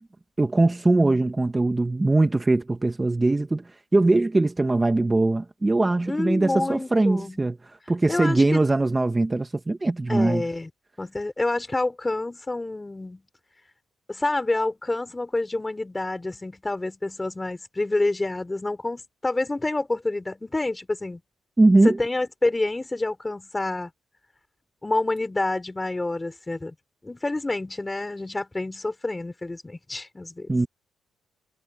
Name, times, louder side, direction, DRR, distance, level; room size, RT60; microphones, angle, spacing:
voice 1, 0.4-3.6 3.9-10.4 21.6-22.0 30.5-30.7, right 2 dB, 20° right, 1.3 m, -21 dB
voice 2, 6.1-7.4 8.1-8.6 10.1-10.7 11.0-13.2 14.1-21.2 21.8-23.9 24.8-26.8 27.0-30.5, left 2 dB, 15° left, 3.6 m, -28 dB
cardioid pair, 90°, 0 cm